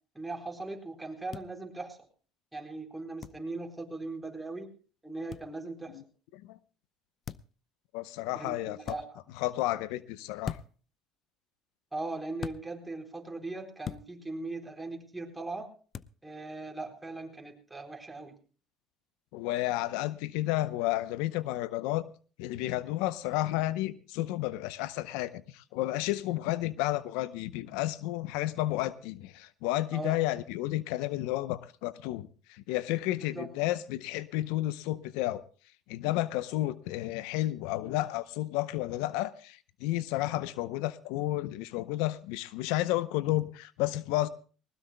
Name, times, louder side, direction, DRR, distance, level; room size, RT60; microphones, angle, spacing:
voice 1, 0.1-2.1 2.5-4.7 5.0-6.0 8.3-9.2 11.9-15.7 16.2-18.4 29.9-30.2 33.1-33.5, right 2 dB, 10° right, 4.3 m, -39 dB
sound 1, 1.3-1.5 3.2-3.4 5.3-5.5 7.2-7.6 8.8-9.0 10.4-10.9 12.4-12.6 13.8-14.1 15.9-16.1, left 8 dB, 45° left, 0.6 m, -39 dB
voice 2, 7.9-9.0 9.4-10.6 19.3-22.1 22.4-35.4 35.9-44.3, left 16 dB, 80° left, 0.7 m, -32 dB
20.0 x 19.5 x 2.2 m
supercardioid pair, 85°, 0 cm